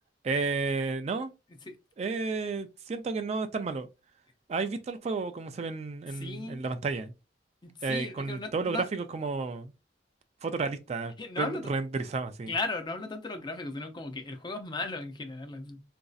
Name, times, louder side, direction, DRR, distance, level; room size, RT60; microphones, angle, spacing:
voice 1, 0.2-1.3 2.0-3.9 4.5-7.1 7.8-9.7 10.4-12.5, right 4 dB, 35° right, 0.3 m, -32 dB
voice 2, 6.2-6.6 7.6-8.9 11.2-11.7 12.5-15.8, left 2 dB, 25° left, 0.5 m, -36 dB
4.0 x 2.6 x 2.3 m
head